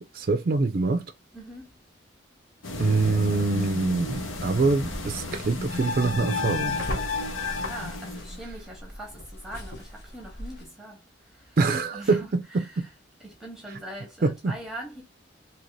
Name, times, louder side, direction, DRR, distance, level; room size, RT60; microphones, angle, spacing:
voice 1, 0.1-1.0 2.8-6.8 11.6-12.9 14.2-14.5, right 3 dB, 45° right, 0.4 m, -25 dB
voice 2, 1.3-1.8 7.6-11.6 11.9-12.9 13.2-15.0, right 1 dB, ahead, 0.8 m, -42 dB
sound 1, 2.6-8.4, left 3 dB, 85° left, 0.9 m, -32 dB
sound 2, 3.3-10.6, left 1 dB, 55° left, 1.2 m, -40 dB
2.8 x 2.6 x 3.1 m
head